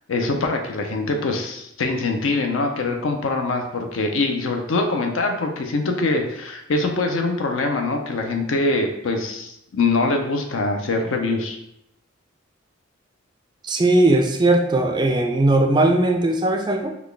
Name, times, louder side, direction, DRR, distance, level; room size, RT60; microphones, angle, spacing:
voice 1, 0.1-11.6, left 3 dB, 75° left, 4 dB, 0.5 m, -23 dB
voice 2, 13.6-16.9, right 2 dB, 20° right, 4 dB, 0.3 m, -18 dB
3.9 x 2.3 x 3.3 m, 0.80 s
head